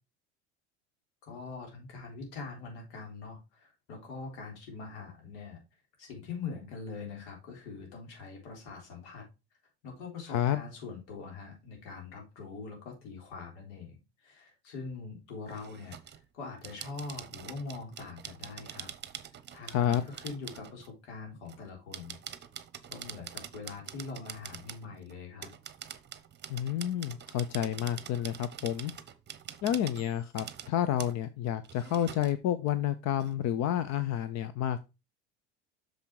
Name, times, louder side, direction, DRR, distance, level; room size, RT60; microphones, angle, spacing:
voice 1, 1.2-5.6 6.0-9.2 9.8-18.9 19.5-22.2 22.9-25.5, left 4 dB, 75° left, 2 dB, 3.7 m, -43 dB
voice 2, 10.3-10.6 19.7-20.1 26.5-28.9 29.6-34.8, left 11 dB, 50° left, 12 dB, 0.7 m, -30 dB
sound 1, 15.5-16.2 16.6-20.9 21.5-25.1 25.4-30.7 31.0-31.2 31.6-32.4 32.7-32.8 33.2-33.4, right 9 dB, 30° right, 0.9 m, -45 dB
6.4 x 5.2 x 4.6 m, 0.27 s
hypercardioid pair, 85°, 35 cm